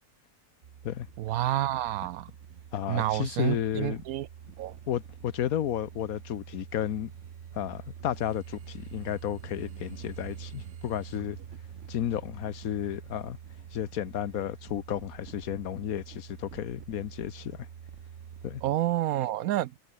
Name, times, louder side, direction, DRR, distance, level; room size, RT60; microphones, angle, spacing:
sound 1, 0.6-18.8, right 8 dB, 55° right, 1.2 m, -46 dB
voice 1, 1.2-2.3 2.9-4.3 4.6-4.7 18.6-19.8, right 14 dB, 75° right, 1.0 m, -29 dB
voice 2, 2.7-4.0 4.9-7.1 7.5-11.4 11.9-13.4 13.7-17.7 18.4-18.6, left 10 dB, 70° left, 1.3 m, -32 dB
omnidirectional pair, 1.6 m